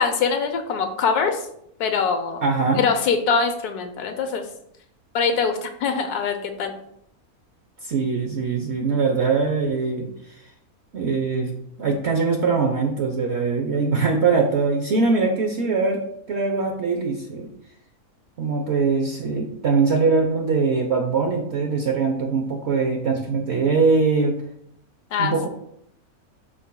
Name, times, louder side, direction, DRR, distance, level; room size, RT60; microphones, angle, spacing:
voice 1, 0.0-1.5 1.8-2.4 2.8-4.4 5.1-6.7 25.1-25.5, left 5 dB, 90° left, 6 dB, 1.3 m, -23 dB
voice 2, 2.4-2.8 7.8-10.1 10.9-16.0 16.3-17.5 18.4-24.4 25.2-25.5, right 4 dB, 55° right, 2 dB, 0.8 m, -22 dB
11.0 x 4.1 x 2.2 m, 0.73 s
omnidirectional pair, 1.6 m